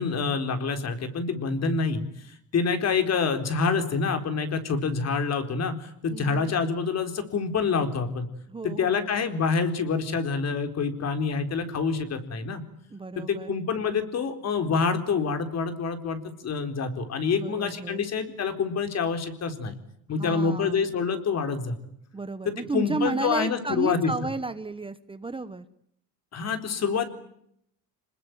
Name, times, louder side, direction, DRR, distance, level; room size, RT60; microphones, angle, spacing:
voice 1, 0.0-8.3 8.6-12.6 13.2-19.8 20.1-21.8 22.5-24.1 26.3-27.1, left 5 dB, 45° left, 8 dB, 4.1 m, -27 dB
voice 2, 6.1-6.5 8.5-9.1 12.9-13.6 17.3-18.1 20.2-20.9 22.1-25.6, right 3 dB, 15° right, 12 dB, 1.1 m, -33 dB
27.5 x 20.5 x 9.3 m, 0.72 s
cardioid pair, 135°, 36 cm